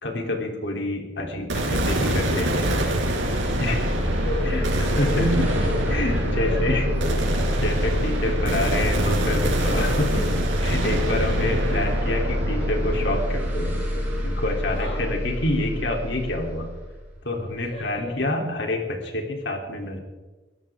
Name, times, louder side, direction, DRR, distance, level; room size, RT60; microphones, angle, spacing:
voice 1, 0.0-2.7 3.6-4.0 4.4-4.6 5.0-5.5 5.9-6.8 7.6-10.3 10.6-13.7 14.2-16.7 17.2-20.0, left 1 dB, 60° left, 1 dB, 3.4 m, -27 dB
sound 1, 1.5-15.8, right 1 dB, 80° right, 4.5 m, -26 dB
sound 2, 2.3-17.8, equal, 10° right, 5.4 m, -27 dB
voice 2, 4.0-6.2 6.4-7.8 14.7-15.0 17.6-18.1, left 1 dB, 35° left, -8 dB, 7.1 m, -35 dB
22.5 x 16.0 x 3.7 m, 1.2 s
head